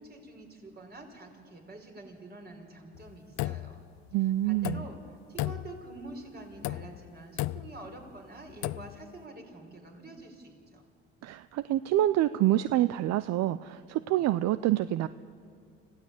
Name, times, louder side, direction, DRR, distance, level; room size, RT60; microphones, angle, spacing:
voice 1, 0.0-3.9 4.1-10.8, right 2 dB, 35° right, 3 dB, 4.9 m, -47 dB
sound 1, 3.0-4.1 4.5-5.1 5.4-6.1 6.5-7.1 7.4-7.9 8.5-9.0, left 17 dB, 70° left, 0.5 m, -35 dB
voice 2, 4.1-4.8 11.2-15.1, right 14 dB, 65° right, 15 dB, 0.6 m, -27 dB
26.0 x 16.0 x 8.4 m, 2.3 s
supercardioid pair, 70°, 29 cm